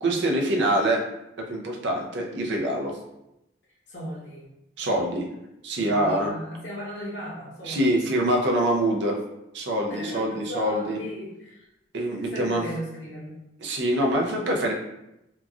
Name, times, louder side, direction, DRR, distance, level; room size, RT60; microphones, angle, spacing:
voice 1, 0.0-1.0 1.5-2.9 4.8-5.3 5.6-6.3 7.6-9.2 9.5-11.0 11.9-12.6 13.6-14.7, right 1 dB, 65° right, 0 dB, 0.5 m, -24 dB
voice 2, 3.9-4.5 5.8-8.0 9.9-11.7 12.2-13.3, equal, 65° left, -7 dB, 0.9 m, -37 dB
2.9 x 2.4 x 2.4 m, 0.87 s
head